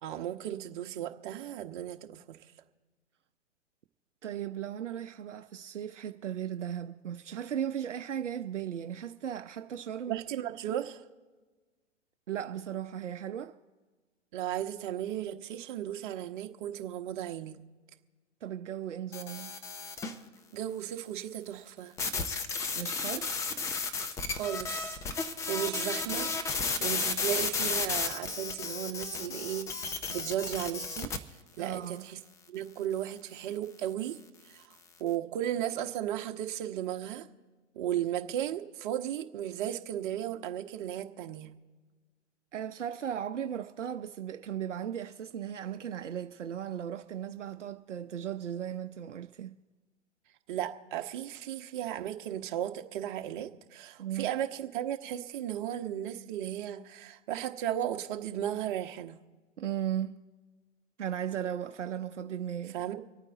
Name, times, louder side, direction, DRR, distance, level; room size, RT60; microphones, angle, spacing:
voice 1, 0.0-2.4 10.1-11.0 14.3-17.6 20.5-22.0 24.3-25.0 25.5-31.1 31.6-32.2 32.5-34.2 34.5-34.6 35.0-37.3 37.7-41.5 50.5-59.2 62.7-63.0, right 11 dB, 40° right, 1.2 m, -35 dB
voice 2, 4.2-10.2 12.3-13.5 18.4-19.5 22.7-23.3 31.6-32.1 42.5-49.5 54.0-54.3 59.6-60.2 61.0-62.8, right 9 dB, 70° right, 0.7 m, -36 dB
sound 1, 19.1-20.2 22.0-31.2, left 4 dB, 10° left, 0.5 m, -33 dB
25.5 x 8.9 x 3.9 m
figure-of-eight pair, 120°, 37 cm